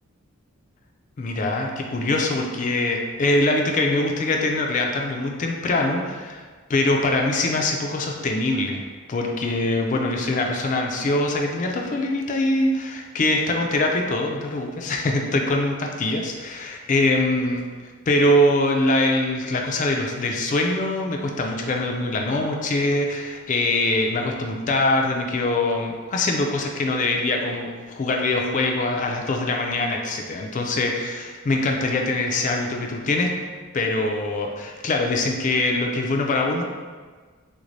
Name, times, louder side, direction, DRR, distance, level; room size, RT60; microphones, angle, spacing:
voice 1, 1.2-6.4 6.7-8.8 9.1-17.6 18.1-33.3 33.7-36.6, left 2 dB, 35° left, 2 dB, 0.3 m, -23 dB
3.4 x 2.6 x 3.1 m, 1.5 s
head